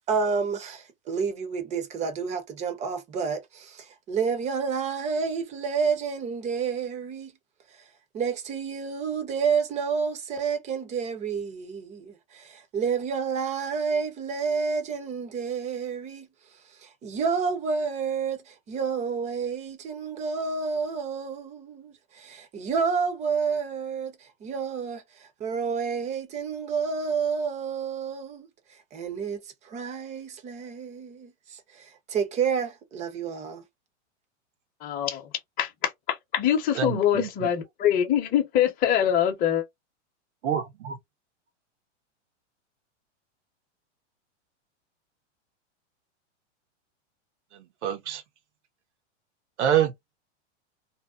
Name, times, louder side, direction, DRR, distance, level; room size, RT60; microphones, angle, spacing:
voice 1, 0.1-7.3 7.7-7.9 8.1-33.6, right 5 dB, 20° right, 0.5 m, -30 dB
voice 2, 34.8-35.2 35.6-39.6, left 10 dB, 25° left, 0.7 m, -24 dB
voice 3, 36.7-37.5 40.4-41.0 47.8-48.2 49.6-49.9, right 9 dB, 70° right, 0.7 m, -26 dB
2.6 x 2.0 x 2.3 m
hypercardioid pair, 130°, 36 cm